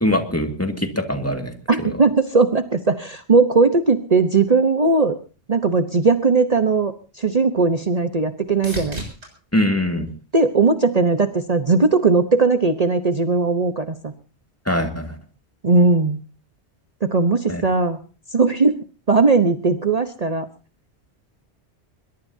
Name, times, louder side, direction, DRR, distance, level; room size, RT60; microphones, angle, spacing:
voice 1, 0.0-1.5 1.8-2.0 9.5-10.1 14.7-15.1 17.5-17.6, left 1 dB, 15° left, 5 dB, 2.1 m, -22 dB
voice 2, 1.7-5.2 5.5-9.0 10.3-14.1 15.6-16.2 17.0-18.0 18.3-18.8 19.1-20.5, right 4 dB, 35° right, 8 dB, 1.1 m, -18 dB
sound 1, 6.9-11.1 11.6-12.2 20.1-20.2, equal, 80° right, 7.3 m, -39 dB
22.0 x 22.0 x 2.8 m, 0.36 s
omnidirectional pair, 1.1 m